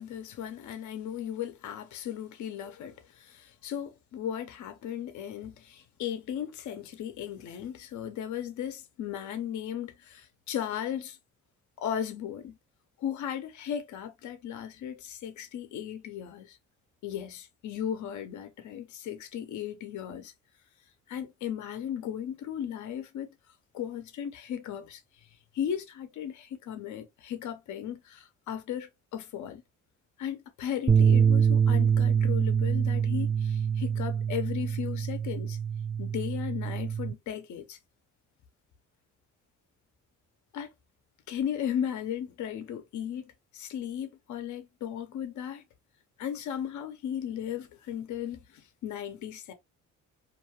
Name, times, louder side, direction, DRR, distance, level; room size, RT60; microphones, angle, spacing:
voice 1, 0.0-11.2 11.8-12.6 13.0-16.6 17.0-20.3 21.1-23.3 23.7-25.0 25.5-29.6 30.2-35.6 36.0-37.8 40.5-40.7 41.3-45.6 46.2-49.5, left 9 dB, 70° left, 0.7 m, -36 dB
sound 1, 30.9-37.1, right 7 dB, 20° right, 0.4 m, -25 dB
2.6 x 2.3 x 2.9 m
cardioid pair, 90°, 30 cm